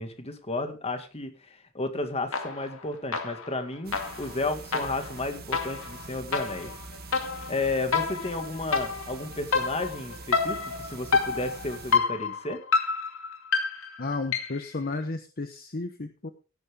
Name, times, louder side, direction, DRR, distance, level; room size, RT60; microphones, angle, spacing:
voice 1, 0.0-6.7 7.5-12.6, left 2 dB, 30° left, 7 dB, 2.1 m, -33 dB
sound 1, 2.3-2.8 3.1-14.7, left 5 dB, 65° left, 2.2 m, -29 dB
sound 2, 3.8-12.0, right 4 dB, 45° right, 1.6 m, -44 dB
voice 2, 14.0-16.3, left 3 dB, 45° left, 8 dB, 1.0 m, -33 dB
16.5 x 9.7 x 3.7 m, 0.34 s
head